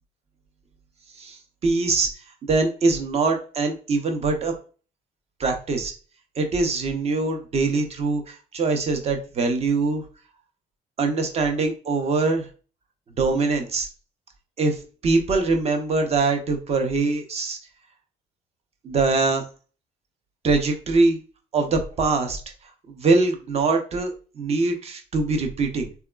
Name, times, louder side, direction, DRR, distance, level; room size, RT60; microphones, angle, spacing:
voice 1, 1.2-2.1 2.4-4.5 5.4-5.9 6.4-10.0 11.0-12.5 13.2-13.9 14.6-17.6 18.8-19.4 20.4-21.2 21.5-22.4 22.9-25.9, right 3 dB, 40° right, 5 dB, 0.6 m, -23 dB
3.4 x 2.2 x 2.2 m, 0.37 s
cardioid pair, 110°, 17 cm